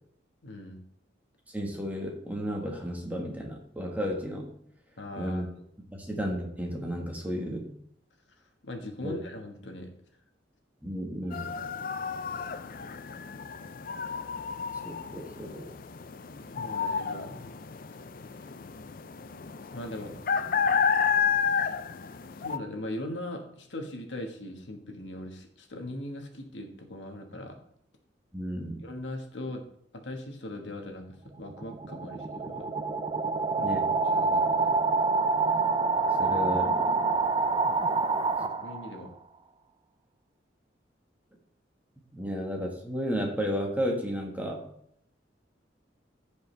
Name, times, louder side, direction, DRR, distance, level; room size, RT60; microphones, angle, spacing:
voice 1, 0.4-0.8 5.0-5.7 8.6-9.9 16.5-17.5 19.7-20.2 22.4-27.6 28.8-29.6 30.0-32.6 33.6-33.7 34.1-34.8 38.4-39.1 42.2-42.3, left 1 dB, 75° left, 3 dB, 1.6 m, -40 dB
voice 2, 1.5-4.5 5.2-5.4 5.9-7.7 9.0-9.2 10.8-11.5 14.7-15.7 28.3-28.9 33.6-33.9 36.2-37.1 42.1-44.7, equal, 10° right, 0 dB, 1.6 m, -33 dB
sound 1, 11.3-22.6, left 6 dB, 50° left, 0.5 m, -31 dB
sound 2, 31.3-39.1, right 4 dB, 25° right, 0.5 m, -27 dB
15.0 x 5.3 x 3.4 m, 0.70 s
head